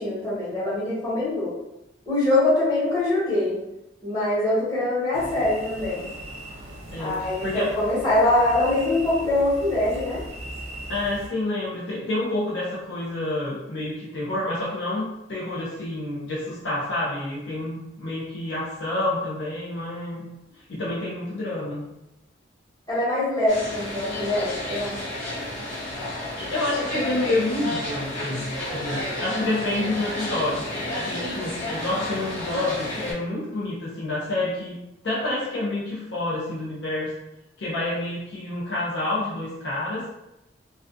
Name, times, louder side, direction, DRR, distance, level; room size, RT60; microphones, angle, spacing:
voice 1, 0.0-1.5 2.1-3.6 4.0-6.1 7.0-10.2 22.9-25.0 29.2-29.9, left 2 dB, 20° left, -10 dB, 1.0 m, -23 dB
sound 1, 5.1-11.3, right 1 dB, 35° right, 0.4 m, -39 dB
voice 2, 6.9-7.7 10.9-20.3 20.7-21.8 26.4-34.8 35.0-37.1 37.6-40.0, left 2 dB, 60° left, -6 dB, 0.5 m, -28 dB
sound 2, 23.5-33.1, left 1 dB, 85° left, 1.0 m, -31 dB
2.4 x 2.2 x 2.5 m, 0.90 s
head